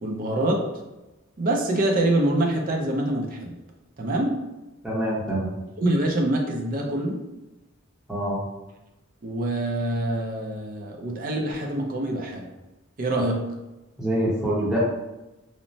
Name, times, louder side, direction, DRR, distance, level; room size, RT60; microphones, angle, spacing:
voice 1, 0.0-0.6 1.4-3.5 4.0-4.3 5.8-7.2 9.2-12.5 13.0-13.4, right 1 dB, 45° right, 1 dB, 0.4 m, -25 dB
voice 2, 4.8-5.5 8.1-8.4 14.0-14.8, right 1 dB, 5° right, -8 dB, 0.8 m, -25 dB
3.1 x 2.0 x 2.6 m, 1.0 s
head